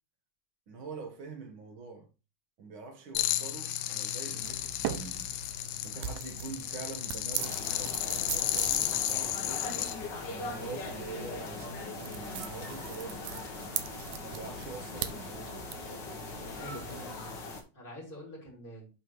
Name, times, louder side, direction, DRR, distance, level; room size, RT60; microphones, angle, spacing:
voice 1, 0.7-2.1 2.6-5.3 5.8-9.8 10.3-13.4 14.2-15.6, right 4 dB, 55° right, 1.5 m, -45 dB
sound 1, 3.2-10.0, left 13 dB, 85° left, 2.3 m, -33 dB
sound 2, 4.4-17.1, right 11 dB, 80° right, 1.9 m, -41 dB
sound 3, 7.4-17.6, left 3 dB, 65° left, 1.1 m, -41 dB
voice 2, 16.6-18.9, equal, 15° left, 2.8 m, -46 dB
11.0 x 4.3 x 3.1 m
omnidirectional pair, 3.8 m